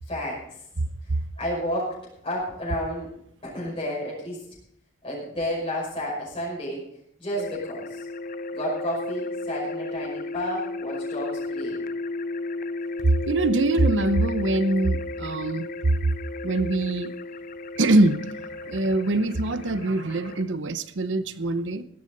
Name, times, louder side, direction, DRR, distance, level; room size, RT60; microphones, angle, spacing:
voice 1, 0.1-0.6 1.1-1.9 2.2-3.1 3.4-4.4 5.0-6.8 7.2-8.1 8.5-11.8, equal, 30° left, -6 dB, 5.7 m, -31 dB
sound 1, 7.4-20.4, left 2 dB, 45° left, 0.6 m, -34 dB
voice 2, 13.0-15.7 16.4-17.1 17.8-18.3 18.6-21.8, right 2 dB, 85° right, 13 dB, 0.8 m, -23 dB
16.0 x 13.0 x 4.0 m, 0.71 s
head